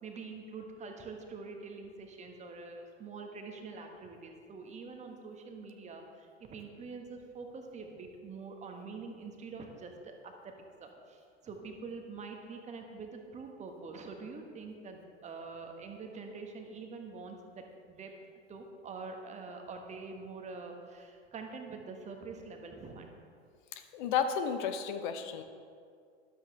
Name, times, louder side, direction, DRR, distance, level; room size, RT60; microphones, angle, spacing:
voice 1, 0.0-10.5 10.8-18.1 18.5-23.1, right 4 dB, 20° right, 3 dB, 1.4 m, -45 dB
voice 2, 23.9-25.4, left 7 dB, 45° left, 8 dB, 0.8 m, -32 dB
13.5 x 12.0 x 3.4 m, 2.2 s
figure-of-eight pair, 95°, 34 cm